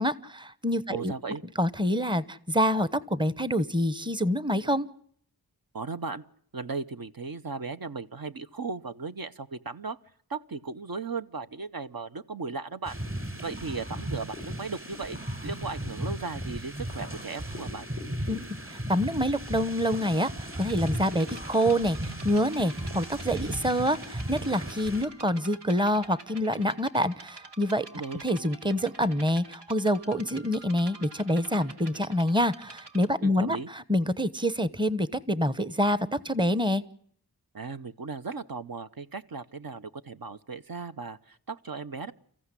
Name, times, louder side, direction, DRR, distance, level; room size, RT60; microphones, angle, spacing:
voice 1, 0.0-1.1 1.6-4.9 18.3-27.9 28.2-36.8, equal, 10° right, 16 dB, 1.0 m, -27 dB
voice 2, 0.9-1.4 5.7-6.2 6.5-10.0 10.3-13.0 13.4-15.2 15.4-17.8 27.9-28.2 33.2-33.7 37.5-42.1, right 4 dB, 60° right, 10 dB, 1.0 m, -36 dB
sound 1, 12.8-25.0, right 1 dB, 35° right, 6.0 m, -36 dB
sound 2, 20.5-33.1, right 3 dB, 85° right, 2.1 m, -48 dB
29.5 x 15.0 x 9.9 m, 0.65 s
wide cardioid pair, 75°, 39 cm